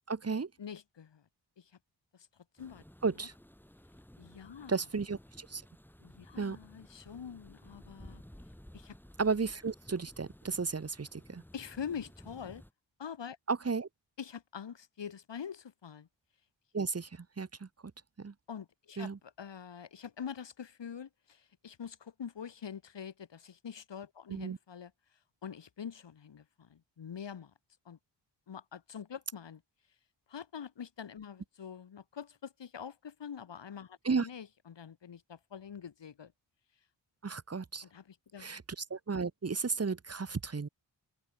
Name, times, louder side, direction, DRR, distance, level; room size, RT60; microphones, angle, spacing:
voice 1, 0.1-0.5 3.0-3.3 4.7-5.6 6.4-6.6 9.2-11.4 13.5-13.9 16.7-17.7 18.2-18.3 19.0-19.2 24.3-24.6 34.0-34.3 37.2-37.8 38.4-40.7, right 4 dB, 35° right, 1.5 m, -34 dB
voice 2, 0.6-1.2 1.6-1.7 2.1-2.3 2.5-2.8 3.2-3.3 4.2-4.7 6.0-8.2 8.7-9.0 11.5-12.6 13.0-13.4 14.2-16.1 18.5-24.9 25.4-27.5 27.8-28.0 28.5-29.6 30.3-36.3 37.8-38.5, left 7 dB, 70° left, 2.5 m, -45 dB
sound 1, 2.6-12.7, equal, 5° left, 3.8 m, -55 dB
open air
cardioid pair, 65°, 45 cm